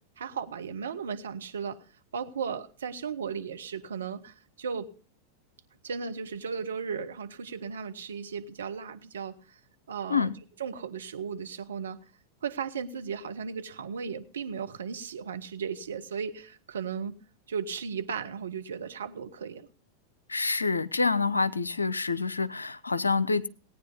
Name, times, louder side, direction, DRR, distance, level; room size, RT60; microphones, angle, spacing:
voice 1, 0.2-1.8 2.1-4.9 5.8-9.6 9.9-10.3 10.6-12.0 12.4-17.1 17.5-19.7, right 6 dB, 65° right, 1.0 m, -36 dB
voice 2, 20.3-23.5, left 4 dB, 80° left, 0.6 m, -27 dB
17.5 x 9.4 x 5.2 m
figure-of-eight pair, 90°, 0 cm